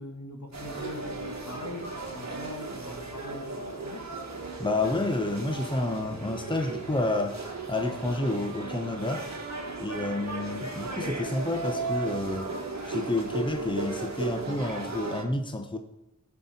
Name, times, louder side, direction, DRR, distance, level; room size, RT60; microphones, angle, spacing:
voice 1, 0.0-4.1, left 2 dB, 60° left, 4 dB, 1.4 m, -41 dB
Seattle Public Market Center, 0.5-15.2, right 3 dB, 60° right, 1.5 m, -36 dB
voice 2, 4.6-7.4 7.7-9.3 9.8-12.5 12.8-15.8, left 2 dB, 15° left, 6 dB, 0.8 m, -29 dB
14.0 x 5.5 x 4.0 m, 0.91 s
wide cardioid pair, 55°, 32 cm